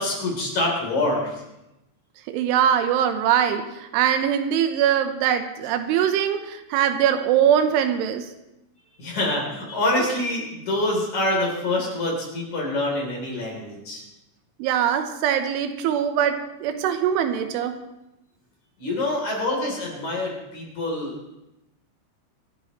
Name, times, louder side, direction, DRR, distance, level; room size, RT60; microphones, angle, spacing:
voice 1, 0.0-1.4 9.0-14.0 18.8-21.3, left 1 dB, 40° left, -1 dB, 4.3 m, -26 dB
voice 2, 2.3-8.3 14.6-17.8, right 9 dB, 85° right, 7 dB, 3.4 m, -22 dB
25.5 x 12.5 x 3.1 m, 0.90 s
omnidirectional pair, 5.6 m